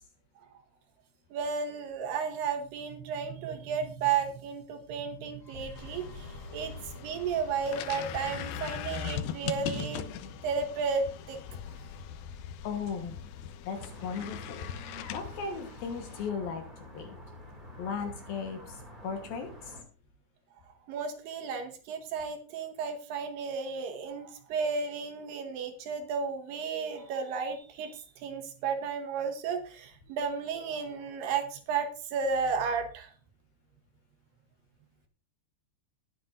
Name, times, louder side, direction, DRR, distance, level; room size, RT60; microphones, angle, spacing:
voice 1, 1.3-10.0 10.4-11.4 20.9-33.1, right 5 dB, 70° right, 6 dB, 2.9 m, -33 dB
sound 1, 5.2-9.3, equal, 10° left, 2.5 m, -50 dB
sound 2, 5.8-16.3, left 9 dB, 90° left, 2.1 m, -40 dB
voice 2, 12.6-13.2 13.6-14.7 15.1-16.6 16.9-17.2 17.8-19.8, left 6 dB, 65° left, 5 dB, 2.7 m, -37 dB
sound 3, 13.7-19.8, left 1 dB, 20° right, 1.4 m, -48 dB
20.0 x 7.9 x 2.6 m, 0.37 s
omnidirectional pair, 5.3 m